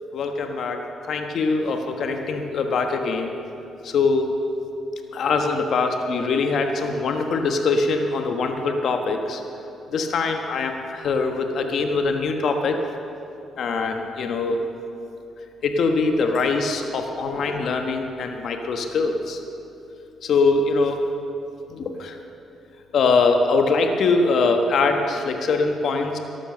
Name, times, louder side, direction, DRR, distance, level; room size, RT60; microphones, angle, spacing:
voice 1, 0.1-3.4 3.8-4.3 5.1-9.4 9.9-12.8 13.6-14.6 15.6-19.4 20.2-21.0 21.7-22.2 22.9-26.2, left 4 dB, 65° left, 4 dB, 1.2 m, -23 dB
13.5 x 11.0 x 6.7 m, 2.8 s
cardioid pair, 90°, 0 cm